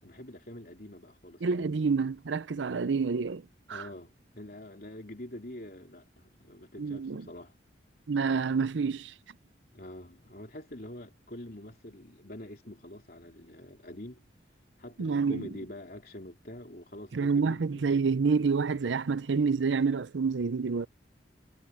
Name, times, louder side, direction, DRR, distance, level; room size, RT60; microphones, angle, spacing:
voice 1, 0.0-1.8 3.7-7.5 9.7-14.2 14.8-18.0, left 1 dB, 50° left, 3.6 m, -45 dB
voice 2, 1.4-3.9 6.8-7.3 8.1-9.1 15.0-15.5 17.1-20.9, right 5 dB, 80° right, 0.6 m, -28 dB
head